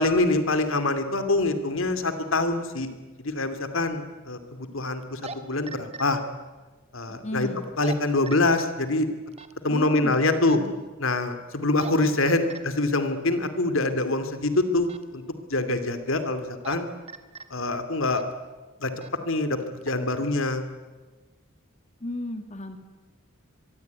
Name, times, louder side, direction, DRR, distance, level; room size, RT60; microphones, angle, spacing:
voice 1, 0.0-2.9 3.2-6.2 6.9-7.5 7.8-9.1 9.6-10.6 11.0-15.2 15.5-16.9 17.5-18.2 18.8-18.9 19.2-19.6 19.8-20.6, left 2 dB, 75° left, 9 dB, 2.6 m, -25 dB
sound 1, 3.0-3.1 5.0-5.4 5.7-6.0 7.6-7.9 8.3-8.6 9.3-9.5 10.4-10.7 11.5-11.9 12.2-12.6 14.8-15.0 16.4-16.8 17.1-17.5 18.1-18.3 19.0-19.1 19.6-19.9, right 4 dB, 30° right, 1.6 m, -39 dB
voice 2, 7.1-7.6 9.7-10.2 10.5-10.7 22.0-22.8, left 1 dB, 35° left, 7 dB, 2.0 m, -34 dB
24.5 x 22.5 x 9.5 m, 1.3 s
head